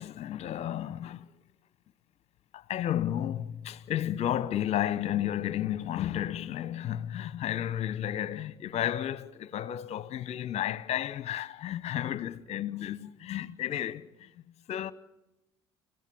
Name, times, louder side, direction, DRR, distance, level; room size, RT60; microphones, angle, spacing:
voice 1, 0.0-1.3 2.5-14.3 14.7-14.9, left 11 dB, 50° left, 1.1 m, -32 dB
29.5 x 16.0 x 7.3 m
hypercardioid pair, 65°, 15 cm